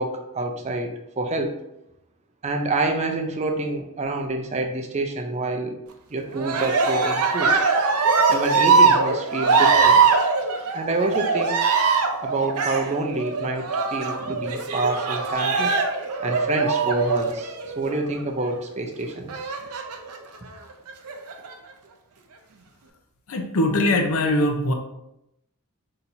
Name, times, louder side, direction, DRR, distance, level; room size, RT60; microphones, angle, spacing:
voice 1, 0.0-1.6 2.4-5.7 6.1-7.5 8.3-10.0 10.7-11.5 12.2-15.7 16.2-19.4, right 2 dB, 30° right, 4 dB, 0.5 m, -27 dB
Cheering, 6.3-18.0 19.3-20.2 20.9-21.5, right 4 dB, 85° right, 0.6 m, -21 dB
voice 2, 23.3-24.7, left 1 dB, 70° left, 4 dB, 0.6 m, -21 dB
5.6 x 2.8 x 2.6 m, 0.85 s
head